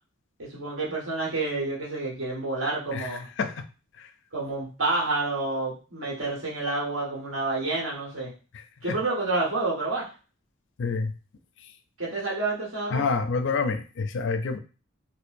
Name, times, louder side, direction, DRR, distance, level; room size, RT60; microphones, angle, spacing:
voice 1, 0.4-3.3 4.3-8.3 8.8-10.1 12.0-13.1, right 2 dB, 70° right, -4 dB, 1.5 m, -29 dB
voice 2, 10.8-11.1 12.9-14.6, left 4 dB, 60° left, 9 dB, 0.4 m, -27 dB
4.4 x 2.2 x 2.6 m, 0.34 s
head